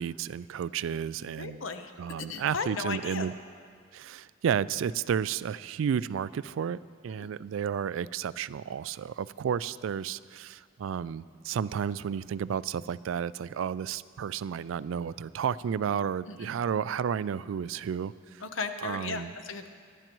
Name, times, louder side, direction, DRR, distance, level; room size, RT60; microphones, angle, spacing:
voice 1, 0.0-1.6 2.0-3.3 3.9-18.4 18.8-19.3, right 8 dB, 80° right, 17 dB, 0.3 m, -32 dB
voice 2, 1.4-1.9 2.3-3.3 7.2-7.3 16.3-16.5 18.4-19.7, left 4 dB, 75° left, 7 dB, 0.8 m, -35 dB
22.0 x 11.5 x 3.1 m, 2.1 s
head